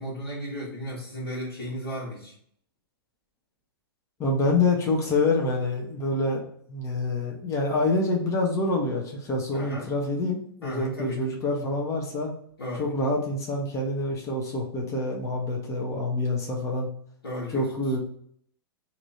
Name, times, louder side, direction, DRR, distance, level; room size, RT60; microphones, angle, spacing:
voice 1, 0.0-2.3 9.5-9.9 10.6-11.2 12.6-12.9 17.2-17.7, equal, 80° left, -8 dB, 1.4 m, -35 dB
voice 2, 4.2-6.4 6.7-12.3 12.8-16.9 17.5-18.0, left 2 dB, 25° left, -1 dB, 0.9 m, -26 dB
2.9 x 2.6 x 4.1 m, 0.63 s
hypercardioid pair, 105°, 13 cm